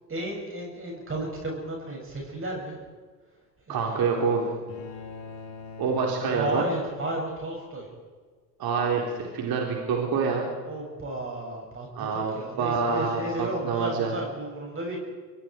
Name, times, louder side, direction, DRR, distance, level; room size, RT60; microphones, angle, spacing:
voice 1, 0.1-2.8 3.7-4.6 6.2-7.9 10.6-15.0, right 1 dB, 25° right, -1 dB, 6.7 m, -34 dB
voice 2, 3.7-4.5 5.8-6.6 8.6-10.5 12.0-14.1, right 5 dB, 45° right, 0 dB, 4.1 m, -26 dB
sound 1, 4.7-7.2, left 5 dB, 55° left, 5.7 m, -42 dB
24.5 x 23.0 x 4.7 m, 1.5 s
hypercardioid pair, 80°, 50 cm